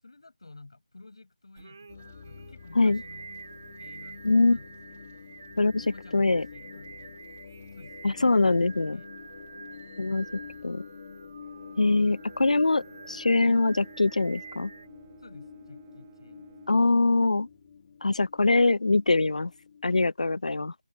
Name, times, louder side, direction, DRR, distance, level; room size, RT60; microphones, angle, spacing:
voice 1, 0.0-3.3 3.8-4.7 5.0-5.2 5.8-7.3 7.7-9.5 15.2-16.6, left 3 dB, 40° left, 5.2 m, -52 dB
Singing, 1.6-14.9, right 4 dB, 25° right, 3.7 m, -48 dB
sound 1, 1.9-20.0, left 6 dB, 15° left, 1.5 m, -48 dB
voice 2, 4.2-4.6 5.6-5.8 6.1-6.5 8.0-9.0 10.0-10.3 10.6-10.8 11.8-14.7 16.7-17.5 18.0-19.5 19.8-20.7, left 3 dB, 70° left, 0.3 m, -23 dB
Bowed string instrument, 11.4-18.1, right 13 dB, 5° right, 1.0 m, -55 dB
figure-of-eight pair, 180°, 4 cm